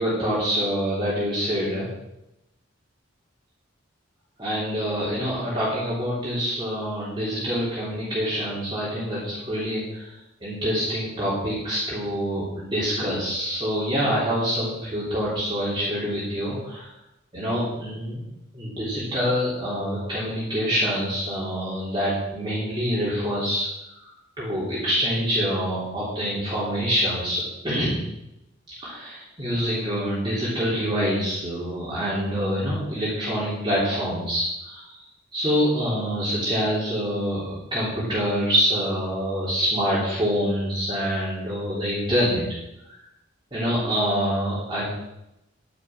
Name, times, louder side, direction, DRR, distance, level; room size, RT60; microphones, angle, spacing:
voice 1, 0.0-1.9 4.4-10.1 10.4-16.9 17.3-18.2 18.5-23.7 24.0-28.0 28.8-34.9 35.3-42.4 43.5-44.9, equal, 20° right, -8 dB, 3.3 m, -26 dB
10.5 x 10.0 x 5.9 m, 0.89 s
head